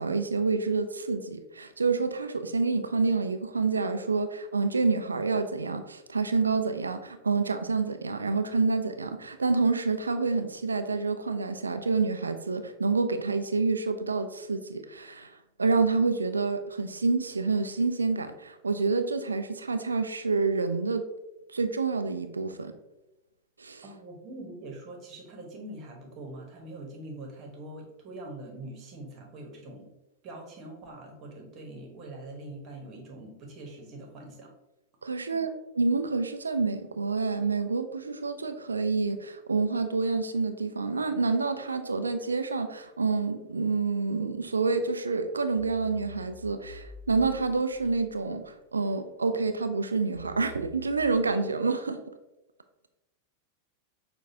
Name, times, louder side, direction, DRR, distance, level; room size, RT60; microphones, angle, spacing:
voice 1, 0.0-15.3 15.6-21.1 21.5-22.7 23.6-23.8 35.0-52.0, right 4 dB, 75° right, 8 dB, 0.3 m, -28 dB
voice 2, 23.8-29.9 30.2-34.5 35.3-35.4, right 2 dB, 35° right, 0 dB, 1.1 m, -43 dB
sound 1, 44.4-45.0 45.6-48.4 48.8-51.2, left 1 dB, 20° left, 0.7 m, -48 dB
6.3 x 2.3 x 2.8 m, 0.94 s
figure-of-eight pair, 90°, 0 cm